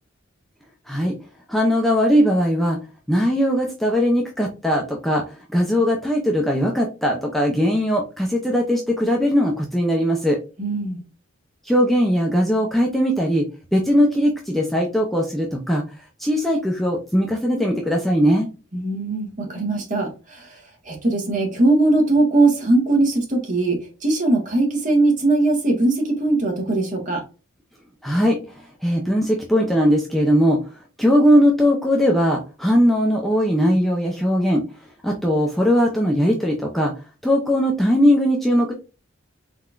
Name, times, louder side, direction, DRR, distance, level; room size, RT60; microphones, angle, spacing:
voice 1, 0.9-1.2 1.5-2.8 3.1-10.4 11.6-15.8 16.2-18.5 28.0-30.6 31.0-34.6 35.0-36.9 37.2-38.7, equal, ahead, -1 dB, 0.6 m, -19 dB
voice 2, 10.6-11.0 18.7-20.6 20.8-27.2, right 2 dB, 40° right, 1 dB, 1.5 m, -20 dB
4.2 x 3.9 x 2.4 m, 0.32 s
head